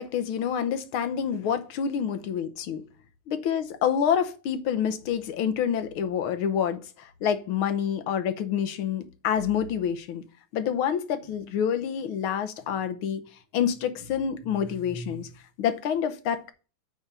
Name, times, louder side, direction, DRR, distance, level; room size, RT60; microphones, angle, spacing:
voice 1, 0.0-2.8 3.3-10.2 10.5-13.2 13.5-15.3 15.6-16.5, left 8 dB, 80° left, 1.8 m, -27 dB
8.6 x 3.8 x 6.7 m
omnidirectional pair, 2.2 m